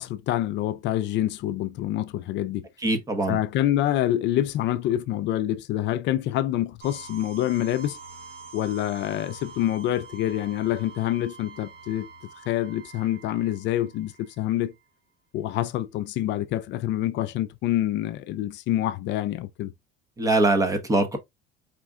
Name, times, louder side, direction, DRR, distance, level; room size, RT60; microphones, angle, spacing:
voice 1, 0.0-2.7 3.3-8.0 8.5-12.1 12.5-14.7 15.3-19.7, left 13 dB, 60° left, 0.4 m, -26 dB
voice 2, 2.8-3.4 20.2-21.2, right 2 dB, 15° right, 0.8 m, -22 dB
sound 1, 6.8-14.6, right 4 dB, 50° right, 1.8 m, -45 dB
5.0 x 2.3 x 3.6 m
cardioid pair, 130°, 21 cm